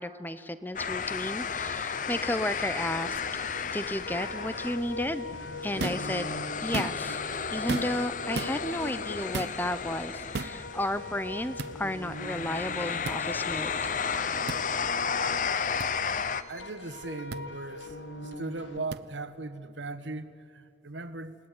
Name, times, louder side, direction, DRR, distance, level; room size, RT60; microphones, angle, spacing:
voice 1, 0.0-3.2 3.7-5.2 5.6-6.3 6.6-7.2 7.5-13.7, left 1 dB, 10° left, 13 dB, 0.8 m, -33 dB
sound 1, 0.8-16.4, left 6 dB, 45° left, 0.7 m, -33 dB
sound 2, 3.0-18.8, left 1 dB, 90° left, 2.1 m, -43 dB
sound 3, 5.8-6.1 6.6-7.2 7.7-8.1 8.3-8.5 9.3-9.6 10.3-10.6 11.6-11.7 13.0-13.2 14.5-14.6 15.8-15.9 17.3-17.4 18.9-19.0, right 3 dB, 65° right, 0.7 m, -34 dB
voice 2, 16.5-18.0 18.2-21.4, right 2 dB, 90° right, 12 dB, 1.3 m, -38 dB
29.0 x 18.0 x 9.8 m, 2.6 s
head